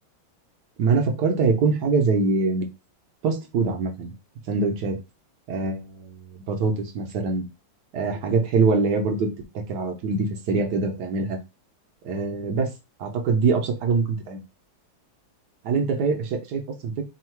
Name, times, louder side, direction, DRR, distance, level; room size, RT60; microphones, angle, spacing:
voice 1, 0.8-2.7 3.2-4.1 4.5-5.0 5.5-7.4 7.9-9.3 9.7-11.4 12.0-12.7 13.0-14.4 15.6-17.1, right 4 dB, 65° right, 4 dB, 1.2 m, -24 dB
3.6 x 2.4 x 4.4 m, 0.27 s
omnidirectional pair, 2.1 m